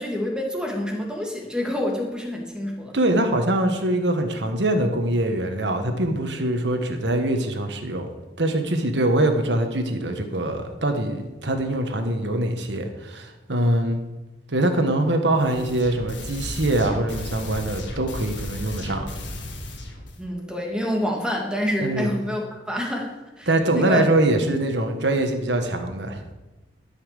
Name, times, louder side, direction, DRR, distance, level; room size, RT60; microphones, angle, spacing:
voice 1, 0.0-3.0 20.2-24.1, left 1 dB, 5° right, 0 dB, 1.9 m, -27 dB
voice 2, 2.9-8.1 8.4-14.0 14.5-19.1 21.8-22.1 23.5-26.2, right 1 dB, 70° right, 5 dB, 1.4 m, -23 dB
sound 1, 15.3-20.2, left 1 dB, 80° left, 2.0 m, -35 dB
13.0 x 5.8 x 6.6 m, 1.1 s
head